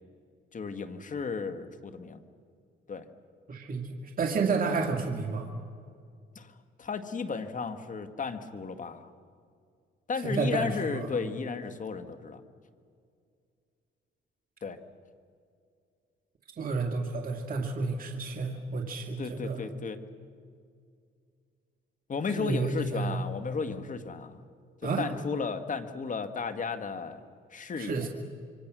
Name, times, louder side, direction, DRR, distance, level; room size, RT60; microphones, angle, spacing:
voice 1, 0.5-2.2 2.9-3.1 6.4-9.1 10.1-12.4 14.6-14.8 19.2-20.0 22.1-24.4 25.0-27.2 27.5-28.1, left 5 dB, 40° left, 9 dB, 1.8 m, -34 dB
voice 2, 3.5-5.5 10.2-11.1 16.6-19.6 22.4-23.2 24.8-25.1 27.8-28.1, right 4 dB, 45° right, 2 dB, 2.1 m, -30 dB
26.5 x 24.5 x 6.3 m, 2.3 s
cardioid pair, 90°, 20 cm